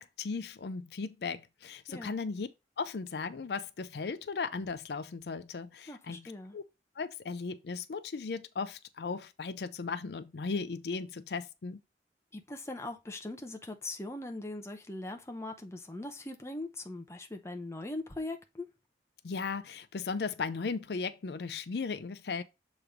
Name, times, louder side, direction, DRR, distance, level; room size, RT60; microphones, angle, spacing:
voice 1, 0.0-2.5 2.8-6.6 7.0-11.8 19.2-22.4, left 4 dB, 70° left, 0.5 m, -36 dB
voice 2, 5.9-6.6 12.3-18.7, left 2 dB, 15° left, 0.7 m, -40 dB
7.0 x 3.1 x 5.0 m
head